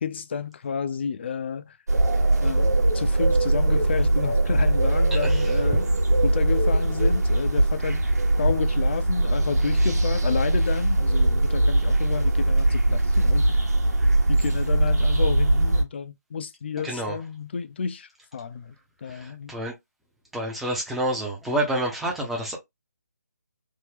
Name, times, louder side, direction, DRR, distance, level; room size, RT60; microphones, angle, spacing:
voice 1, 0.0-1.8 2.4-5.9 6.2-8.0 8.4-13.6 14.3-18.7 19.0-19.5, left 6 dB, 40° left, 0.4 m, -31 dB
sound 1, 1.9-15.8, right 1 dB, 70° right, 1.1 m, -21 dB
voice 2, 5.1-5.5 16.8-17.2 19.1-19.7 20.3-22.6, right 1 dB, ahead, 0.6 m, -28 dB
3.6 x 2.1 x 3.2 m
figure-of-eight pair, 155°, 9 cm